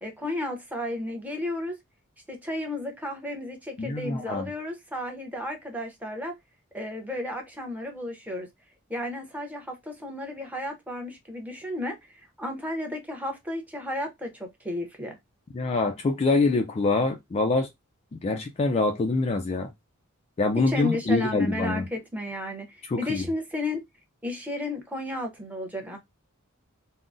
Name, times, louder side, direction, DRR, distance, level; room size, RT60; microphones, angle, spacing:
voice 1, 0.0-1.7 2.3-6.3 6.7-8.5 8.9-12.0 12.4-15.2 20.6-23.8 24.2-26.0, left 1 dB, 10° right, 0.7 m, -33 dB
voice 2, 3.8-4.5 15.5-17.7 18.2-19.7 20.4-21.9 22.9-23.2, left 3 dB, 30° left, 0.3 m, -25 dB
3.6 x 2.0 x 2.5 m
head